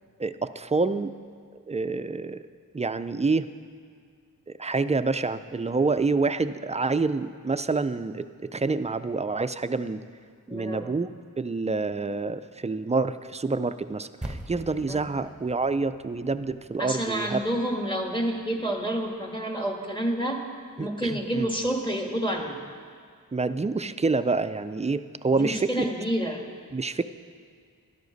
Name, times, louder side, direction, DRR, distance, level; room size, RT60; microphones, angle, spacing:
voice 1, 0.2-1.1 1.7-2.4 2.7-3.5 4.5-10.0 10.5-11.1 11.4-17.4 20.8-21.5 23.3-25.9 26.7-27.0, right 3 dB, 20° right, 12 dB, 0.4 m, -27 dB
voice 2, 10.5-10.9 14.9-15.1 16.8-20.4 20.8-22.6 25.3-26.4, right 1 dB, 15° left, 2 dB, 1.6 m, -29 dB
sound 1, 14.2-18.7, right 1 dB, 5° right, 1.2 m, -43 dB
12.5 x 11.0 x 4.0 m, 2.1 s
wide cardioid pair, 55°, 34 cm